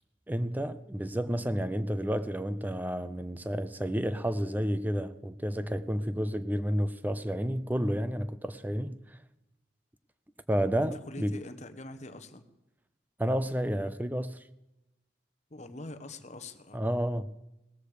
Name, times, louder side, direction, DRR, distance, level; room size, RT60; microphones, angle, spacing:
voice 1, 0.3-9.2 10.5-11.4 13.2-14.4 16.7-17.3, equal, 10° right, 0.5 m, -31 dB
voice 2, 11.0-12.4 15.5-16.8, left 2 dB, 40° left, 1.0 m, -44 dB
18.0 x 13.5 x 5.0 m
head